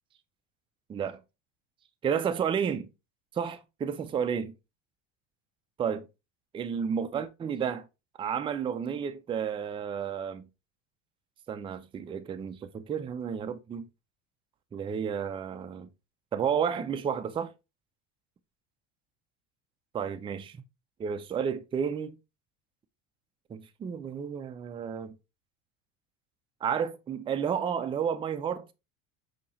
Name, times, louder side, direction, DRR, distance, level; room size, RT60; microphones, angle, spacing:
voice 1, 0.9-1.2 2.0-2.9 3.3-4.5 5.8-6.1 6.5-7.9 8.2-10.5 11.5-13.9 14.7-15.9 16.3-17.5 19.9-20.6 21.0-22.2 23.5-25.2 26.6-28.7, right 7 dB, 15° right, 0.3 m, -31 dB
5.2 x 2.9 x 2.9 m
supercardioid pair, 90°, 37 cm